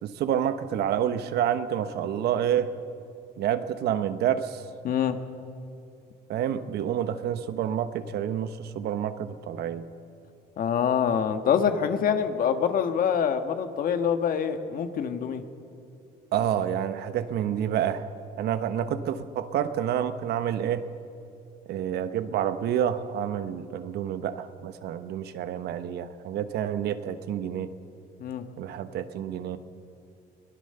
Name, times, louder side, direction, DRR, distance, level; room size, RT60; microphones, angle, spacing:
voice 1, 0.0-2.7 3.4-4.6 6.3-9.9 16.3-18.1 18.4-20.9 21.7-27.7 28.6-29.6, right 9 dB, 70° right, 11 dB, 1.1 m, -28 dB
voice 2, 4.8-5.2 10.6-15.4 28.2-28.4, left 7 dB, 55° left, 8 dB, 1.5 m, -25 dB
23.0 x 18.0 x 6.8 m, 2.6 s
cardioid pair, 110°, 17 cm